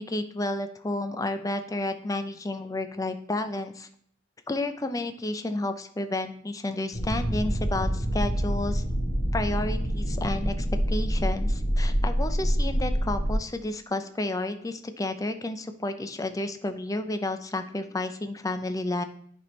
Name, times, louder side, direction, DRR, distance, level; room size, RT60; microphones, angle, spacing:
voice 1, 0.0-3.9 4.5-8.8 9.3-19.0, left 2 dB, 15° left, 9 dB, 0.4 m, -31 dB
sound 1, 6.9-13.3, equal, 55° left, 1.8 m, -26 dB
10.5 x 4.3 x 3.1 m, 0.64 s
head